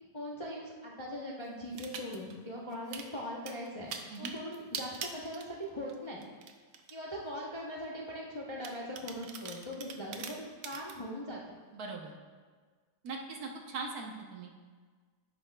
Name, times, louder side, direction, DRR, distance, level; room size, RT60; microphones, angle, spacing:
voice 1, 0.1-3.9 4.2-6.3 6.9-11.6, equal, 25° left, -4 dB, 0.6 m, -40 dB
sound 1, 1.7-2.3 2.7-3.1 3.5-6.0 6.2-6.9 7.5-7.6 8.6-11.0, right 7 dB, 80° right, 1.3 m, -42 dB
voice 2, 11.7-12.1 13.0-14.5, right 3 dB, 65° right, 1 dB, 1.3 m, -40 dB
10.5 x 8.8 x 2.3 m, 1.5 s
omnidirectional pair, 1.9 m